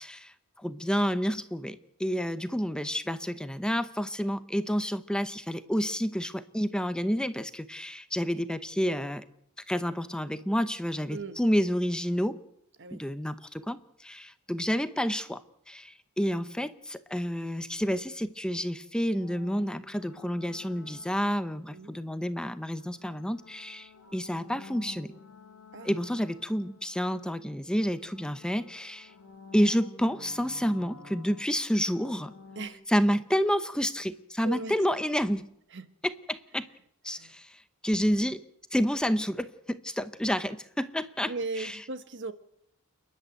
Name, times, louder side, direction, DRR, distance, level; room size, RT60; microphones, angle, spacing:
voice 1, 0.0-9.2 9.7-12.4 12.9-15.4 15.7-25.1 25.8-29.1 29.5-32.3 32.9-35.5 36.0-36.7 37.0-38.4 38.7-41.8, equal, 5° left, 0.8 m, -29 dB
voice 2, 11.1-11.4 12.8-13.0 21.7-22.0 25.7-25.9 32.5-32.8 34.4-34.7 35.7-35.9 37.1-37.3 41.2-42.3, right 3 dB, 55° right, 1.3 m, -37 dB
sound 1, 19.2-22.1 22.8-27.6 27.8-32.7, left 4 dB, 75° left, 1.5 m, -50 dB
29.0 x 11.0 x 9.1 m
head